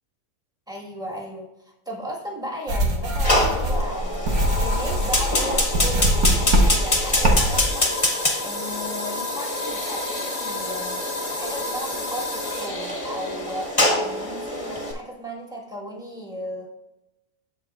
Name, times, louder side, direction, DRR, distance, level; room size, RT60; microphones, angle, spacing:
voice 1, 0.7-4.3 4.6-11.1 11.3-16.7, equal, 5° right, -2 dB, 1.3 m, -35 dB
sound 1, 2.7-7.7, equal, 80° right, 1.6 m, -22 dB
Piano, 3.1-6.9, equal, 25° right, 0.3 m, -41 dB
Fire, 3.2-14.9, left 1 dB, 25° left, 1.1 m, -25 dB
14.0 x 4.7 x 2.4 m, 0.96 s
omnidirectional pair, 1.5 m